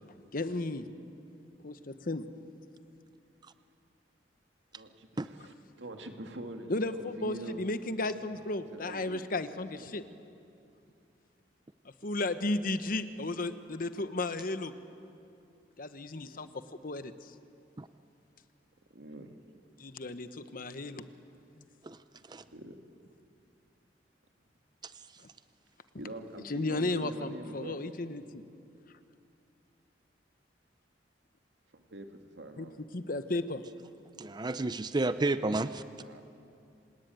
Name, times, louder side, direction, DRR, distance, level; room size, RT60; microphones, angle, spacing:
voice 1, 0.3-0.9 1.6-2.2 6.7-10.0 12.0-14.7 15.8-16.5 16.8-17.3 19.8-21.0 21.6-21.7 26.5-28.4 32.6-32.7 32.9-33.6, left 2 dB, 50° left, 1.1 m, -34 dB
voice 2, 4.7-7.6 8.7-10.1 18.9-19.6 22.3-22.8 26.0-27.8 31.7-32.8 35.9-36.2, right 1 dB, 90° right, 2.1 m, -45 dB
voice 3, 34.2-35.8, right 2 dB, 25° right, 0.5 m, -31 dB
27.5 x 18.5 x 9.2 m
head